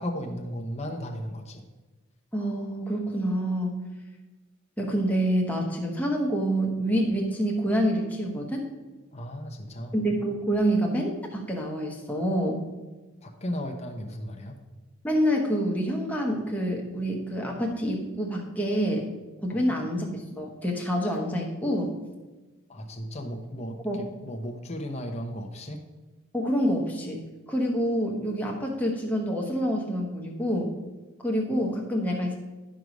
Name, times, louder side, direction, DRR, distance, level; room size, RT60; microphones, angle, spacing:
voice 1, 0.0-1.7 9.1-9.9 13.2-14.6 19.5-19.8 22.7-23.8 24.2-25.8, equal, 30° left, 2 dB, 0.9 m, -35 dB
voice 2, 2.3-3.8 4.8-8.6 9.9-12.6 15.0-19.0 19.4-21.9 23.8-24.0 26.3-30.7 31.2-32.4, equal, 5° left, -1 dB, 1.1 m, -27 dB
11.0 x 4.8 x 5.2 m, 1.2 s
head